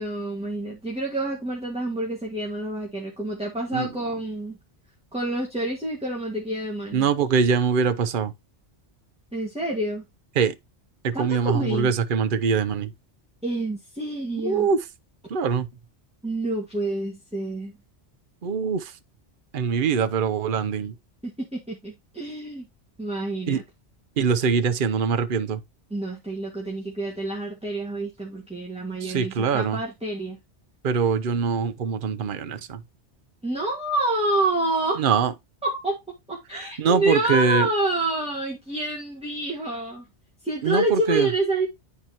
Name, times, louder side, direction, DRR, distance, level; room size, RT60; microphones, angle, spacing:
voice 1, 0.0-4.6 5.1-7.0 9.3-10.0 11.1-11.9 13.4-14.7 16.2-17.7 21.2-22.7 23.0-23.6 25.9-30.4 33.4-35.0 35.6-36.0 36.3-40.0 40.4-41.7, right 1 dB, 5° right, 1.7 m, -28 dB
voice 2, 6.9-8.3 10.4-10.5 11.0-12.9 14.4-14.8 15.3-15.7 18.4-18.9 19.5-20.9 23.5-23.6 24.2-25.6 29.0-29.8 30.8-32.8 35.0-35.3 36.8-37.7 40.6-41.3, right 6 dB, 50° right, 0.9 m, -23 dB
11.5 x 4.5 x 2.9 m
omnidirectional pair, 1.2 m